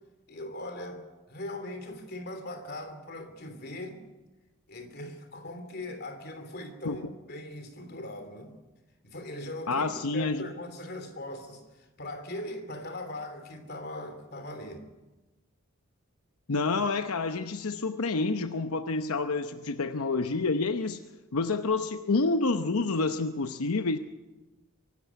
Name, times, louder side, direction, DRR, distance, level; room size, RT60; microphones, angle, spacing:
voice 1, 0.3-1.0 1.3-4.0 4.7-8.5 9.0-14.9, left 1 dB, 45° left, 3.0 m, -40 dB
voice 2, 9.7-10.5 16.5-21.0 21.3-24.0, left 3 dB, 85° left, 0.8 m, -28 dB
24.5 x 12.5 x 9.4 m
head